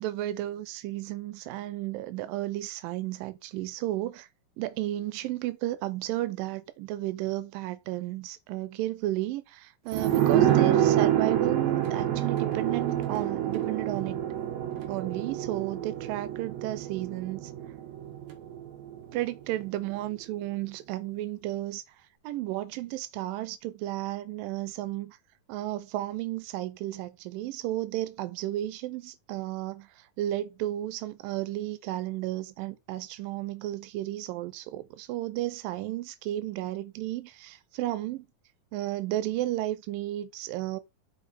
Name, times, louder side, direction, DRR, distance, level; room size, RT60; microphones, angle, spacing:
voice 1, 0.0-4.3 4.6-14.2 14.9-17.5 19.1-21.8 22.2-25.2 25.5-38.3 38.7-40.8, right 15 dB, 90° right, 2.3 m, -33 dB
sound 1, 9.9-19.2 19.5-19.6, right 11 dB, 65° right, 2.0 m, -27 dB
5.3 x 5.0 x 4.1 m
omnidirectional pair, 3.9 m